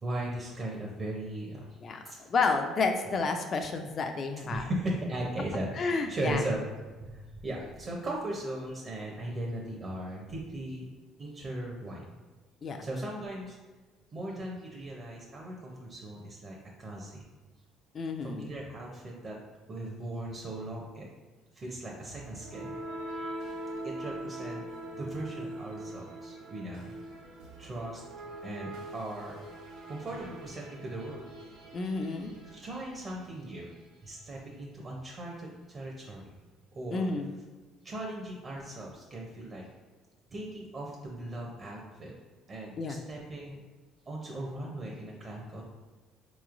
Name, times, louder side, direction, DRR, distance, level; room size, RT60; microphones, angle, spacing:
voice 1, 0.0-1.8 2.0-2.2 3.0-3.1 4.4-6.6 7.0-10.8 11.2-12.0 12.8-13.6 14.1-17.2 18.2-19.4 19.7-21.1 21.5-22.7 23.8-24.6 25.0-27.1 27.6-28.0 28.4-29.4 29.9-31.3 32.4-33.7 34.0-36.3 36.7-37.0 37.8-39.6 40.3-42.1 42.5-43.6 44.1-45.6, right 1 dB, 35° right, -2 dB, 0.6 m, -38 dB
voice 2, 2.3-4.6 5.8-6.4 12.6-12.8 17.9-18.5 31.7-32.3 36.9-37.3 42.8-43.0, left 4 dB, 40° left, 5 dB, 0.3 m, -30 dB
sound 1, 22.1-34.0, right 1 dB, 85° right, 0.9 m, -43 dB
4.4 x 3.0 x 2.5 m, 1.3 s
cardioid pair, 115°, 0 cm